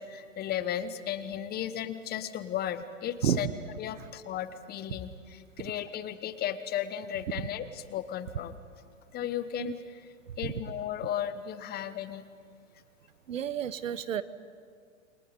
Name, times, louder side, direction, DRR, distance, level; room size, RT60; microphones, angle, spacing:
voice 1, 0.0-3.5 3.8-8.6 9.1-10.0 10.4-12.2, left 10 dB, 25° left, 13 dB, 1.1 m, -35 dB
voice 2, 13.3-14.2, right 9 dB, 80° right, 15 dB, 1.1 m, -30 dB
29.0 x 24.0 x 5.3 m, 2.1 s
hypercardioid pair, 120°, 38 cm